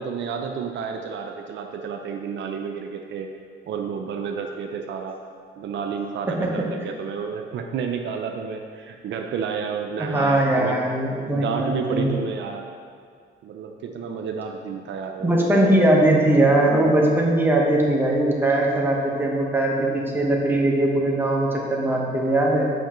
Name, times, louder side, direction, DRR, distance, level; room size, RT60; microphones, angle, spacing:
voice 1, 0.0-3.3 3.7-5.2 5.6-10.8 11.3-12.7 13.4-15.3, right 6 dB, 70° right, 3 dB, 0.5 m, -30 dB
voice 2, 10.0-12.1 15.2-22.7, right 1 dB, 10° right, -2 dB, 1.1 m, -20 dB
7.1 x 5.2 x 3.1 m, 2.2 s
cardioid pair, 90°, 20 cm